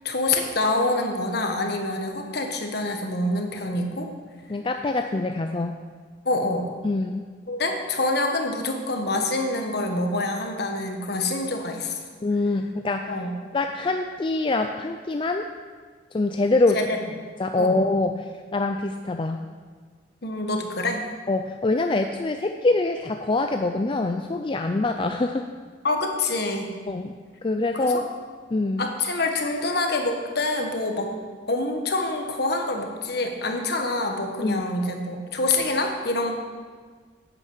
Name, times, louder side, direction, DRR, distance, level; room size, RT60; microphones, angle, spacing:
voice 1, 0.0-4.1 6.2-6.7 7.5-12.0 13.1-13.3 16.7-17.0 17.6-17.8 20.2-21.0 25.8-26.7 27.7-28.0 28.8-31.1 31.5-36.3, left 2 dB, 55° left, 3 dB, 1.4 m, -26 dB
voice 2, 4.5-5.8 6.8-7.2 12.2-13.1 13.5-15.4 16.1-16.8 17.4-19.4 21.3-25.5 26.9-27.1 27.4-28.0 28.5-28.9 34.4-34.7, left 2 dB, 25° left, 6 dB, 0.4 m, -24 dB
10.5 x 9.0 x 6.1 m, 1.5 s
head